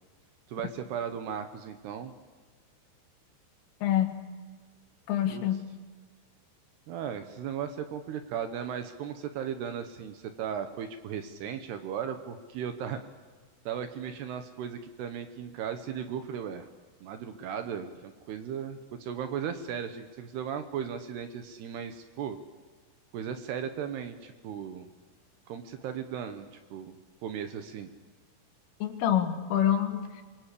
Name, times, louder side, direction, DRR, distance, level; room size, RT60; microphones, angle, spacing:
voice 1, 0.5-2.1 5.3-5.4 6.9-13.0 13.7-16.7 17.0-22.4 23.1-24.9 25.5-26.9 27.2-27.9, right 8 dB, 70° right, 8 dB, 2.7 m, -36 dB
voice 2, 3.8-4.2 5.1-5.6 28.8-30.2, left 10 dB, 80° left, 7 dB, 4.4 m, -26 dB
26.5 x 23.5 x 8.4 m, 1.4 s
omnidirectional pair, 5.7 m